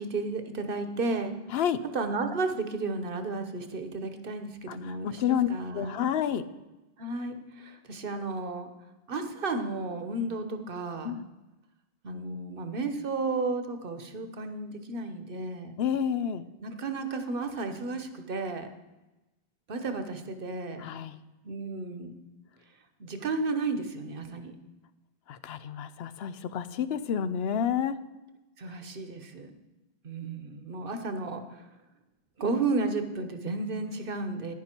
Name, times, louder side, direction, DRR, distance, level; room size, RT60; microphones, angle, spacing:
voice 1, 0.0-1.3 1.9-6.1 7.0-8.7 9.1-11.2 12.0-15.7 16.6-18.7 19.7-20.9 21.4-22.2 23.0-24.5 28.6-29.5 30.0-31.7 32.4-34.5, right 3 dB, 60° right, 8 dB, 1.1 m, -33 dB
voice 2, 4.7-6.4 11.0-11.3 15.8-16.5 20.8-21.2 25.3-28.0, left 8 dB, 80° left, 13 dB, 0.8 m, -29 dB
11.0 x 10.0 x 4.4 m, 1.0 s
omnidirectional pair, 1.0 m